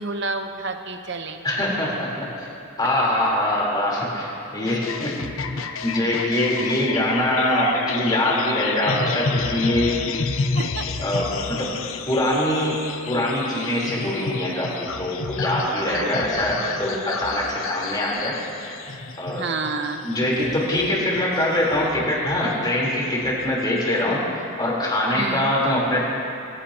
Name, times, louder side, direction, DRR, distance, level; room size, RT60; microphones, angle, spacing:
voice 1, 0.0-1.4 10.5-10.9 15.9-16.8 19.4-20.0 25.1-25.6, right 3 dB, 60° right, 6 dB, 1.0 m, -30 dB
voice 2, 1.4-2.5 2.8-5.1 5.8-9.9 11.0-11.7 12.1-12.8 13.1-18.7 19.2-19.5 20.0-24.2 24.6-26.1, left 1 dB, 20° left, -5 dB, 3.7 m, -23 dB
sound 1, 4.7-24.1, left 4 dB, 80° left, 0.8 m, -30 dB
22.5 x 16.0 x 2.9 m, 2.8 s
head